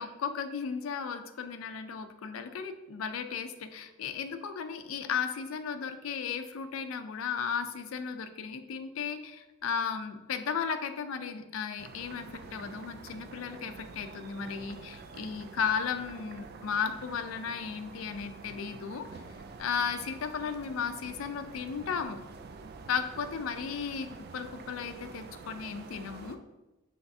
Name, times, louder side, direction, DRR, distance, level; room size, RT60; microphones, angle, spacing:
voice 1, 0.0-19.0 19.6-22.2 22.9-24.1 24.3-26.4, left 6 dB, 85° left, 9 dB, 0.4 m, -35 dB
sound 1, 11.8-26.4, right 4 dB, 50° right, 0.3 m, -47 dB
5.8 x 3.2 x 2.7 m, 1.1 s
head